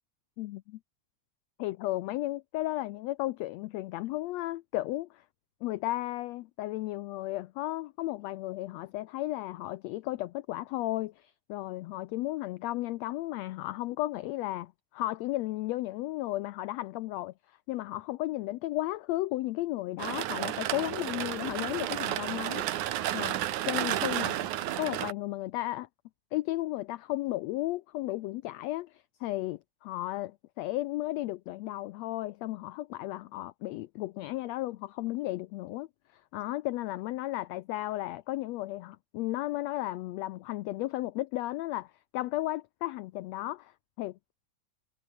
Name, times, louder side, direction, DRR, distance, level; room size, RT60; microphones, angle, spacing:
voice 1, 0.4-0.8 1.6-5.2 5.6-22.7 23.1-24.5 24.8-25.9 26.3-44.2, left 17 dB, 85° left, 1.5 m, -34 dB
sound 1, 20.0-25.1, right 13 dB, 70° right, 2.5 m, -32 dB
omnidirectional pair, 3.7 m